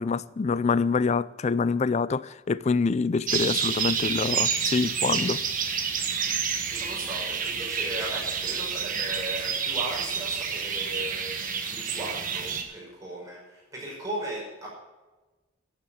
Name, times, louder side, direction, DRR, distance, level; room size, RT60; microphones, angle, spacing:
voice 1, 0.0-5.4, left 4 dB, 35° left, 0.3 m, -26 dB
sound 1, 3.3-12.6, right 6 dB, 40° right, 1.5 m, -29 dB
voice 2, 6.7-11.3 11.7-14.7, right 1 dB, 15° right, 5.4 m, -37 dB
12.0 x 7.3 x 8.7 m
head